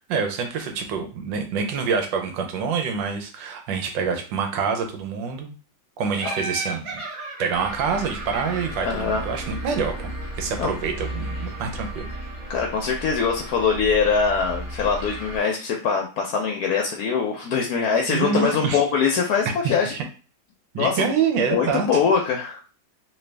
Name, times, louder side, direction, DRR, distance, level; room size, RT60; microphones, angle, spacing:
voice 1, 0.1-5.5 6.0-6.9 7.4-10.1 10.4-12.1 18.1-18.8 19.6-20.0 20.7-22.0, right 6 dB, 85° right, 4 dB, 1.3 m, -26 dB
Laughter, 6.1-9.8, right 3 dB, 70° right, 1.7 m, -35 dB
sound 1, 7.5-15.4, right 1 dB, 50° right, 1.7 m, -34 dB
voice 2, 8.8-9.2 10.6-10.7 12.5-19.9 20.8-21.1 21.5-22.6, left 6 dB, 70° left, 2 dB, 0.9 m, -23 dB
3.3 x 2.5 x 3.3 m, 0.36 s
omnidirectional pair, 2.0 m